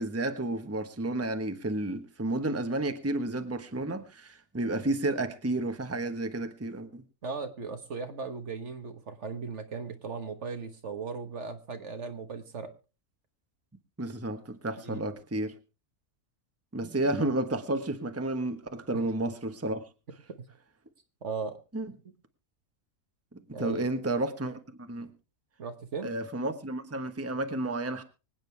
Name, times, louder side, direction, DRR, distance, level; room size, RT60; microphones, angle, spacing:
voice 1, 0.0-7.0 14.0-15.5 16.7-19.8 21.7-21.9 23.6-25.1 26.0-28.0, right 2 dB, 10° right, 1.1 m, -31 dB
voice 2, 7.2-12.7 14.8-15.0 18.9-19.0 20.4-20.5 21.2-21.6 23.5-23.9 25.6-26.1, right 5 dB, 60° right, 1.6 m, -37 dB
25.0 x 9.1 x 3.3 m
omnidirectional pair, 1.4 m